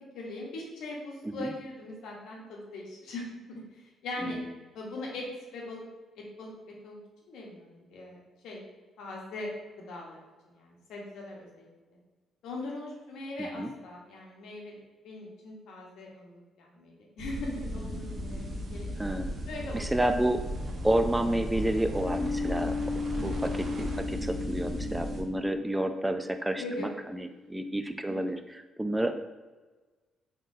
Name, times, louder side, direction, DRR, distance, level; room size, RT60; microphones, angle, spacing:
voice 1, 0.1-3.2 3.5-4.4 4.7-5.9 6.1-6.5 6.8-7.0 7.3-8.6 9.0-9.5 9.9-11.7 12.4-19.2 19.5-20.3 23.1-23.5 26.6-27.0 28.1-28.3, left 2 dB, 85° left, -2 dB, 1.0 m, -41 dB
voice 2, 13.4-13.7 19.0-19.3 19.7-20.4 20.8-22.8 23.2-29.1, right 1 dB, 10° right, 8 dB, 0.3 m, -30 dB
sound 1, 17.2-25.2, equal, 50° right, 0.8 m, -36 dB
sound 2, 22.0-27.5, left 4 dB, 45° left, 0.8 m, -36 dB
3.8 x 3.7 x 2.7 m, 1.3 s
cardioid pair, 90°, 0 cm